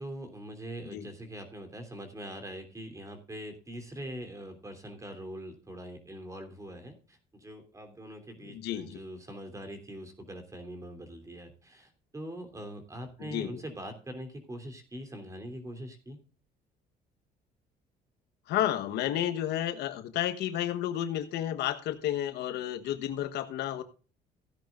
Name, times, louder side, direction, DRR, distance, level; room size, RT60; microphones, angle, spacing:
voice 1, 0.0-16.2, right 1 dB, 20° right, 7 dB, 3.1 m, -43 dB
voice 2, 8.4-9.0 13.2-13.5 18.5-23.8, left 12 dB, 80° left, 10 dB, 1.2 m, -31 dB
15.5 x 10.0 x 2.5 m, 0.36 s
cardioid pair, 110°, 17 cm